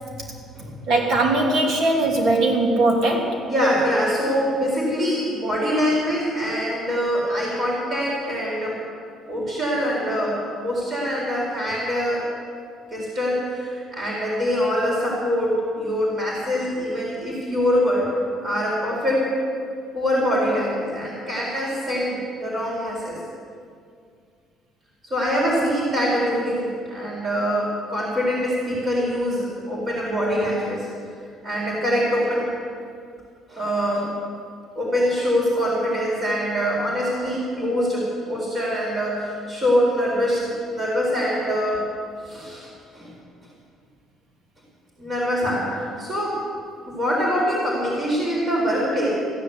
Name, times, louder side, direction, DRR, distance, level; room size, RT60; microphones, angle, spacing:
voice 1, 0.9-3.4, right 2 dB, 55° right, 0 dB, 3.0 m, -20 dB
voice 2, 3.5-8.8 9.3-12.3 12.9-18.1 18.4-19.2 19.9-23.2 25.0-30.9 31.4-32.5 33.5-34.1 34.8-41.8 42.2-43.1 45.0-46.4 46.9-49.1, equal, 25° right, -6 dB, 4.3 m, -24 dB
15.5 x 10.5 x 8.1 m, 2.3 s
cardioid pair, 150°, 0 cm